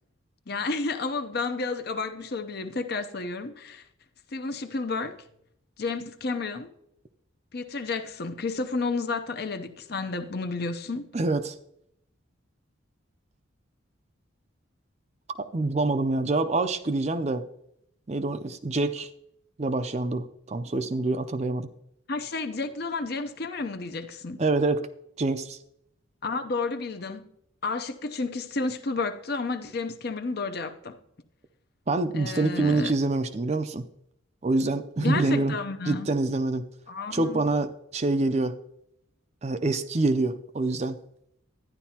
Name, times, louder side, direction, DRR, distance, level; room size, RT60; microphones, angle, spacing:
voice 1, 0.5-3.8 4.3-5.2 5.8-6.7 7.5-11.1 22.1-24.4 26.2-27.3 27.6-31.0 32.1-32.9 35.0-36.1 36.9-37.6, left 3 dB, 50° left, 0.7 m, -31 dB
voice 2, 11.1-11.5 15.4-17.4 18.1-19.1 19.6-21.7 24.4-24.9 25.2-25.6 31.9-33.9 34.4-35.6 35.8-36.6 37.1-38.6 39.4-41.0, right 2 dB, 30° right, 0.5 m, -26 dB
12.0 x 10.0 x 2.8 m
head